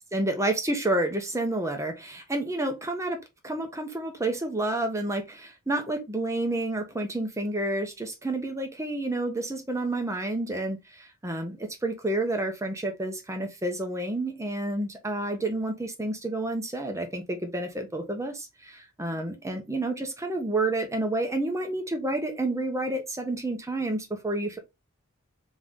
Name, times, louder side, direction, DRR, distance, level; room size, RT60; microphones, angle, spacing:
voice 1, 0.1-24.6, right 2 dB, 15° right, 0.9 m, -30 dB
3.9 x 3.0 x 3.7 m
head